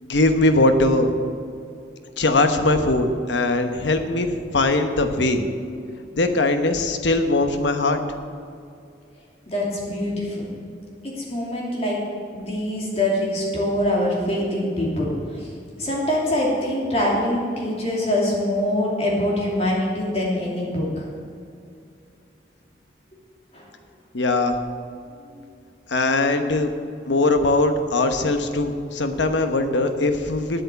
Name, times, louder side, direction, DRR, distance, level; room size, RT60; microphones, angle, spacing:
voice 1, 0.0-1.1 2.2-5.5 6.1-8.0 24.1-24.5 25.9-26.7 27.1-30.6, left 2 dB, 85° left, 7 dB, 1.0 m, -20 dB
voice 2, 9.5-10.5 11.0-12.0 12.3-15.5 15.8-21.1 23.5-23.6 25.2-25.3, left 1 dB, 35° left, -4 dB, 2.7 m, -24 dB
9.4 x 8.1 x 8.2 m, 2.4 s
head